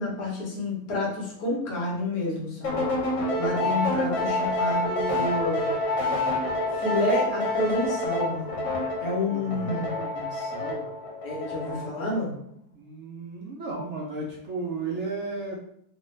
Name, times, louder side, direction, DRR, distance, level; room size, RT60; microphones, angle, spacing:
voice 1, 0.0-2.9 3.4-5.7 6.7-8.5 9.0-10.0 11.2-12.3, left 2 dB, 55° left, -3 dB, 1.4 m, -29 dB
sound 1, 2.6-12.0, left 1 dB, 85° left, 1.4 m, -28 dB
voice 2, 3.5-4.2 9.3-10.8 12.7-15.6, right 3 dB, 75° right, -4 dB, 0.6 m, -35 dB
3.2 x 2.5 x 3.1 m, 0.71 s
omnidirectional pair, 2.0 m